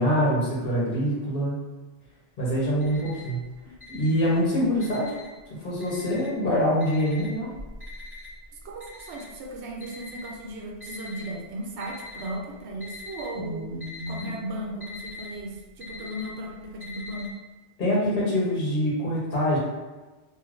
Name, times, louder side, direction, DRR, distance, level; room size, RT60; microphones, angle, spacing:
voice 1, 0.0-1.5 2.4-3.4 3.9-5.1 5.6-7.5 13.3-14.3 17.8-19.6, equal, 50° left, -7 dB, 1.1 m, -25 dB
Alarm, 2.8-3.4 3.8-5.4 5.8-6.5 6.8-11.3 11.8-12.4 12.7-13.3 13.6-17.3, left 2 dB, 20° left, 1.4 m, -43 dB
voice 2, 3.7-4.1 8.6-13.7 14.1-17.3, right 1 dB, 85° right, 0 dB, 0.9 m, -36 dB
3.1 x 2.6 x 2.5 m, 1.2 s
omnidirectional pair, 1.1 m